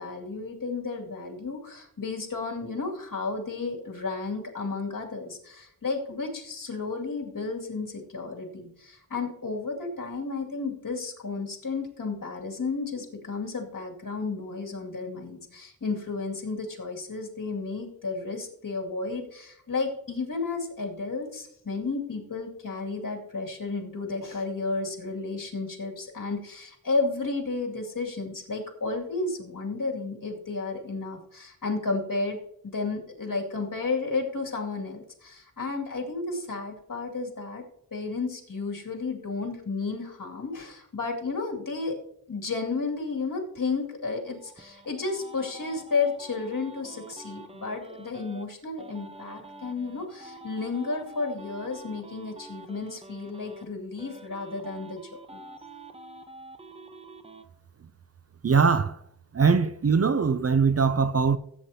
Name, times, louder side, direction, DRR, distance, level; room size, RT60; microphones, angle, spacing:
voice 1, 0.0-32.4 32.6-37.6 37.9-42.0 42.3-55.0 55.3-55.4, left 4 dB, 60° left, 2.4 m, -32 dB
sound 1, 44.1-48.4 48.8-53.7 54.0-57.4, right 2 dB, 15° right, 0.8 m, -46 dB
voice 2, 58.4-59.0 59.3-61.4, right 5 dB, 40° right, 0.5 m, -21 dB
16.0 x 8.4 x 2.8 m
wide cardioid pair, 100°, 37 cm